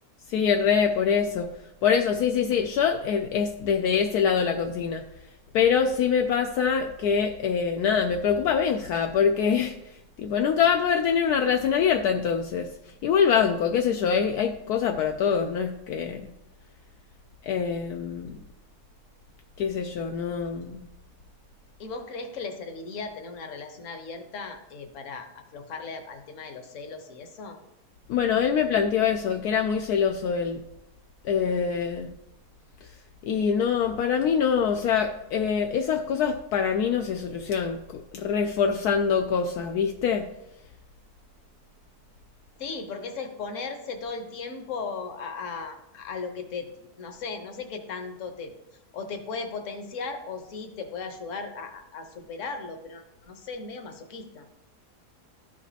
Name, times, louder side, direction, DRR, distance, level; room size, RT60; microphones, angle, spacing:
voice 1, 0.3-1.5 1.8-5.0 5.5-12.7 13.0-16.3 17.4-18.4 19.6-20.8 28.1-30.6 31.2-32.1 32.8-32.9 33.2-40.3, left 7 dB, 75° left, 4 dB, 1.1 m, -24 dB
voice 2, 21.8-27.6 42.6-46.7 47.0-48.5 48.9-54.5, left 4 dB, 55° left, 5 dB, 1.2 m, -37 dB
13.0 x 5.1 x 2.8 m, 0.89 s
omnidirectional pair, 1.7 m